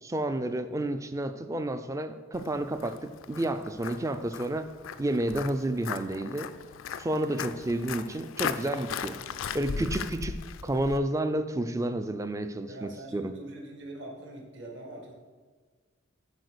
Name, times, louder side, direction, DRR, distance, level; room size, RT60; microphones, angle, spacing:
voice 1, 0.0-4.7 5.0-6.5 7.0-9.2 9.5-13.3, right 1 dB, 15° right, 10 dB, 0.4 m, -30 dB
Walk footsteps, 2.3-11.0, left 6 dB, 75° left, 0.4 m, -38 dB
voice 2, 9.0-9.6 12.7-15.1, right 1 dB, 60° right, 0 dB, 1.7 m, -44 dB
8.2 x 4.3 x 6.7 m, 1.5 s
head